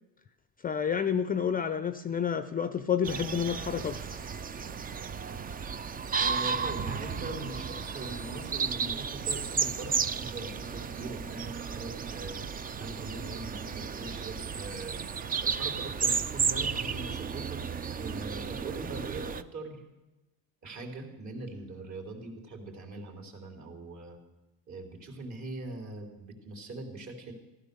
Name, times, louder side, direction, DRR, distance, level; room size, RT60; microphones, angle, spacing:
voice 1, 0.6-4.0, left 7 dB, 20° left, 0.6 m, -29 dB
sound 1, 3.0-19.4, right 6 dB, 20° right, 0.5 m, -33 dB
voice 2, 6.2-15.0 15.4-17.6 17.9-19.8 20.6-24.2 24.7-27.3, right 2 dB, 45° right, 3.6 m, -41 dB
15.0 x 12.5 x 6.8 m
cardioid pair, 120°, 40 cm